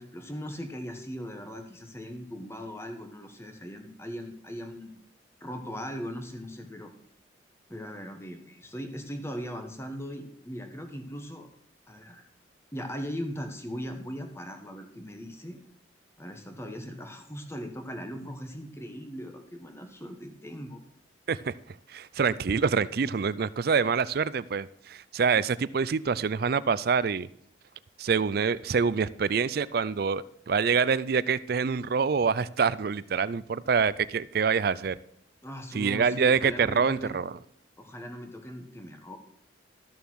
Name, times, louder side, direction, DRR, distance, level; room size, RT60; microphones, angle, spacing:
voice 1, 0.0-5.0 5.4-6.9 7.7-11.5 11.9-12.3 12.7-15.6 16.2-20.8 35.4-37.1 37.8-39.2, equal, 15° left, 5 dB, 1.3 m, -39 dB
voice 2, 21.9-27.3 28.0-35.0 35.7-37.3, right 5 dB, 55° right, 19 dB, 0.4 m, -26 dB
13.0 x 6.8 x 6.3 m, 0.69 s
head